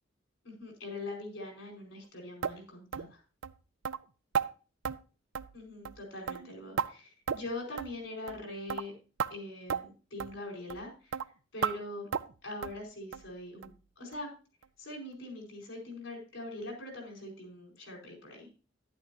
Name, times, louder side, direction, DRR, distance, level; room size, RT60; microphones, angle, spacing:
voice 1, 0.4-3.2 5.5-8.9 9.3-12.1 12.4-13.7 14.0-14.3 14.8-18.5, left 2 dB, 75° left, 1 dB, 4.7 m, -42 dB
sound 1, 2.4-2.6 2.9-3.1 3.4-3.5 3.8-4.0 4.3-4.5 4.8-5.0 5.3-5.6 5.8-6.0 6.3-6.9 7.3-7.5 7.8-7.9 8.3-8.4 8.7-8.9 9.2-9.3 9.7-9.8 10.2-10.3 10.7-10.8 11.1-11.3 11.6-11.8 12.1-12.3 12.6-12.8 13.1-13.3 13.6-13.7 14.1-14.2 14.6-14.7, right 7 dB, 80° right, 0.5 m, -33 dB
11.5 x 10.5 x 2.7 m, 0.34 s
head